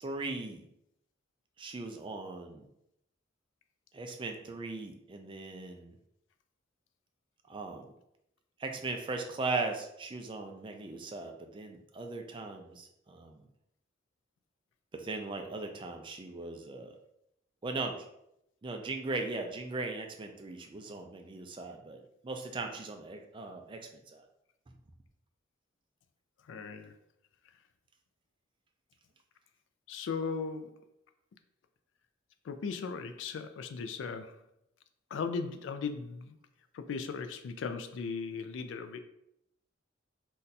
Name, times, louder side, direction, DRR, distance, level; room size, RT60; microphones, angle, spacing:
voice 1, 0.0-0.7 1.6-2.6 3.9-6.0 7.5-7.9 8.6-13.4 14.9-16.9 17.6-18.1 18.6-24.2, right 3 dB, 25° right, 4 dB, 0.3 m, -38 dB
voice 2, 26.5-26.9 29.9-30.8 32.4-34.4 35.1-36.4 36.7-39.0, left 5 dB, 65° left, 9 dB, 0.3 m, -37 dB
2.6 x 2.2 x 3.9 m, 0.79 s
head